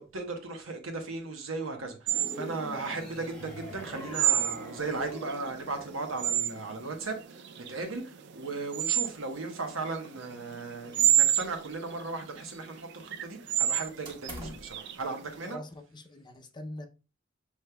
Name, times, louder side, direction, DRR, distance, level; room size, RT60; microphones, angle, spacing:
voice 1, 0.0-15.6, right 3 dB, 85° right, 1.1 m, -37 dB
sound 1, 2.1-6.6, left 1 dB, 5° left, 1.0 m, -45 dB
sound 2, 2.1-15.5, right 11 dB, 55° right, 0.3 m, -30 dB
sound 3, 10.9-11.7 12.0-12.9 14.0-14.8, right 1 dB, 25° right, 1.2 m, -45 dB
voice 2, 15.5-16.9, left 1 dB, 20° left, 0.6 m, -43 dB
7.1 x 3.2 x 2.2 m
head